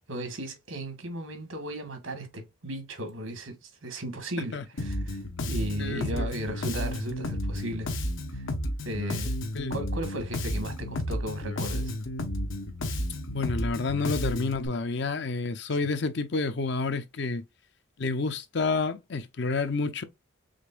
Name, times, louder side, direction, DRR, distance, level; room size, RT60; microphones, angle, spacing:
voice 1, 0.1-5.2 5.5-7.9 8.3-8.4 8.8-9.3 9.7-11.9, right 1 dB, 85° right, 1.6 m, -35 dB
Bass guitar, 4.8-14.7, left 1 dB, 75° left, 1.0 m, -32 dB
voice 2, 5.8-6.3 9.5-9.7 13.3-17.4 18.0-20.0, left 3 dB, 55° left, 0.6 m, -29 dB
5.1 x 3.7 x 2.4 m
head